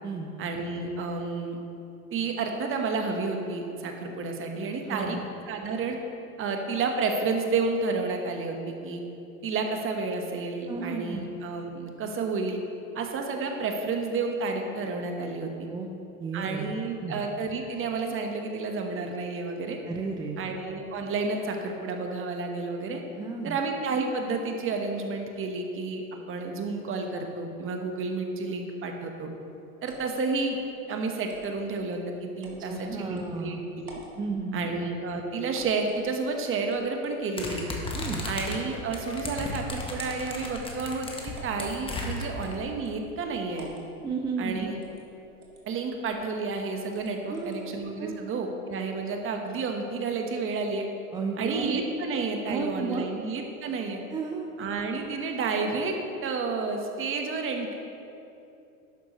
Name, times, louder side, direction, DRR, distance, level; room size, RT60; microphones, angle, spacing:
voice 1, 0.4-1.6 2.1-5.2 5.5-6.0 6.4-9.0 9.4-12.6 12.9-15.7 16.3-19.8 20.4-23.0 23.4-29.3 29.8-30.6 30.9-34.0 34.5-37.7 38.2-43.7 44.4-44.8 45.6-50.8 51.4-54.0 54.6-57.8, right 4 dB, 30° right, 3 dB, 1.3 m, -31 dB
voice 2, 4.8-5.2 10.7-11.3 15.7-15.9 16.2-17.2 19.9-20.5 23.2-23.6 32.6-33.6 34.2-34.7 37.9-38.2 44.0-44.7 47.3-47.7 48.0-48.3 51.1-51.7 52.5-53.1 54.1-54.5, right 4 dB, 10° right, 2 dB, 0.4 m, -33 dB
sound 1, 29.9-30.2 31.3-31.5 32.4-32.6 33.2-33.3 33.8-34.2 35.5-36.0 36.7-37.1 37.8-38.5 38.9-39.8 40.4-40.7 41.3-41.6 42.4-43.0 43.6-43.9 44.8-45.1 45.4-45.6 46.0-46.3 46.9-47.6, right 3 dB, 90° right, 1.9 m, -50 dB
sound 2, 37.4-42.5, left 2 dB, 10° left, 1.4 m, -35 dB
12.0 x 8.9 x 3.2 m, 2.8 s
hypercardioid pair, 100°, 43 cm